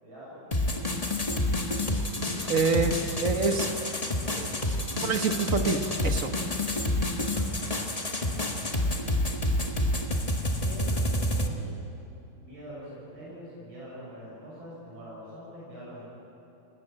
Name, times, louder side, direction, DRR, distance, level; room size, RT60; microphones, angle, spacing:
voice 1, 0.0-1.1 8.2-8.7 10.6-11.8 12.4-16.1, equal, 70° right, -7 dB, 8.0 m, -45 dB
sound 1, 0.5-11.5, left 1 dB, 20° left, 1.5 m, -28 dB
voice 2, 2.5-3.7 4.3-4.5 5.0-6.3 7.2-7.5, right 4 dB, 45° right, 6 dB, 1.5 m, -27 dB
29.5 x 18.5 x 9.0 m, 2.9 s
omnidirectional pair, 2.3 m